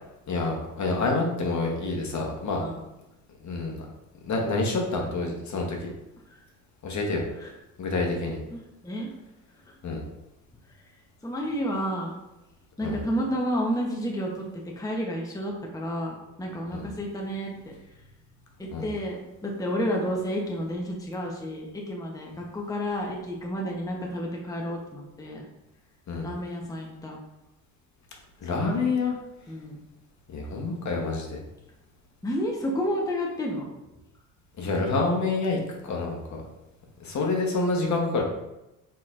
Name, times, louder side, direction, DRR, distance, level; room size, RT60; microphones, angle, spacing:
voice 1, 0.3-2.6 3.4-3.8 4.3-5.9 6.8-7.2 7.8-8.4 9.8-10.0 12.8-13.0 16.7-16.9 18.7-18.9 26.1-26.3 28.4-29.1 30.3-31.4 34.6-36.4 37.0-38.2, left 3 dB, 45° left, 0 dB, 1.2 m, -27 dB
voice 2, 8.5-9.1 9.7-9.8 11.2-12.1 12.8-17.7 18.6-25.4 26.2-27.2 28.5-28.9 29.5-29.8 32.2-33.7, equal, 10° left, -1 dB, 0.9 m, -31 dB
4.3 x 4.1 x 2.5 m, 0.95 s
hypercardioid pair, 60°, 40 cm